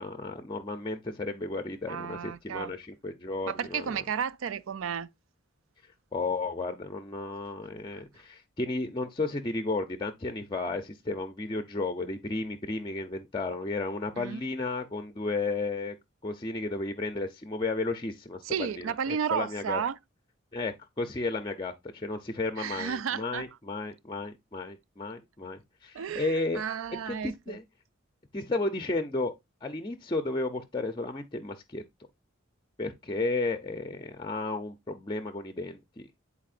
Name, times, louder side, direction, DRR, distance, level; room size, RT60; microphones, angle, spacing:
voice 1, 0.0-4.0 6.1-16.0 16.2-19.8 20.5-26.6 27.1-27.6 28.3-29.3 29.6-31.8 32.8-36.1, left 3 dB, 25° left, 0.5 m, -33 dB
voice 2, 1.9-2.7 3.5-5.1 14.2-14.4 18.4-20.0 22.6-23.5 25.9-27.6, right 7 dB, 80° right, 0.4 m, -33 dB
10.0 x 4.1 x 2.5 m
head